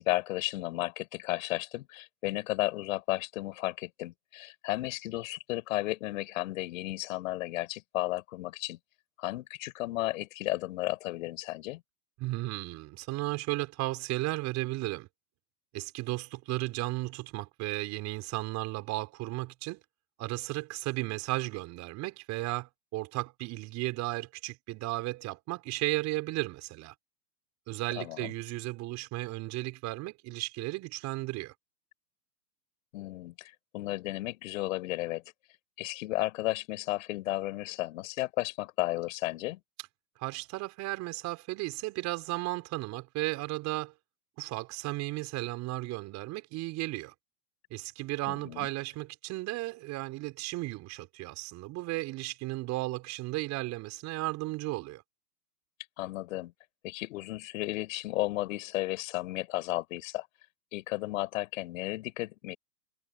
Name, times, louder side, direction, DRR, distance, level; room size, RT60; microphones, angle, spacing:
voice 1, 0.0-8.8 9.2-11.8 28.0-28.3 32.9-35.2 35.8-39.6 48.3-48.7 56.0-56.5 56.8-60.3 60.7-62.6, left 17 dB, 50° left, 4.8 m, -33 dB
voice 2, 12.2-15.1 15.7-19.8 20.2-26.9 27.7-31.5 40.2-43.9 44.4-47.1 47.7-55.0, right 20 dB, 35° right, 5.3 m, -34 dB
hypercardioid pair, 125°, 49 cm